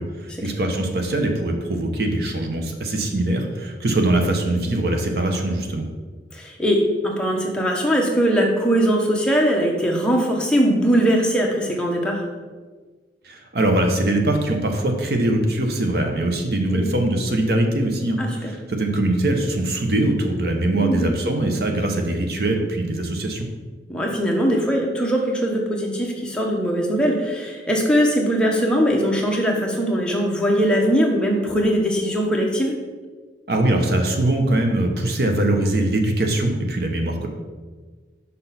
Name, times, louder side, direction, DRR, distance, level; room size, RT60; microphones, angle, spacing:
voice 1, 0.0-5.8 13.2-23.5 33.5-37.3, right 1 dB, 60° right, 3 dB, 0.8 m, -22 dB
voice 2, 6.3-12.2 16.7-16.9 18.2-18.5 20.8-21.1 23.9-32.7, equal, 5° left, -1 dB, 0.8 m, -21 dB
5.9 x 5.5 x 4.0 m, 1.4 s
head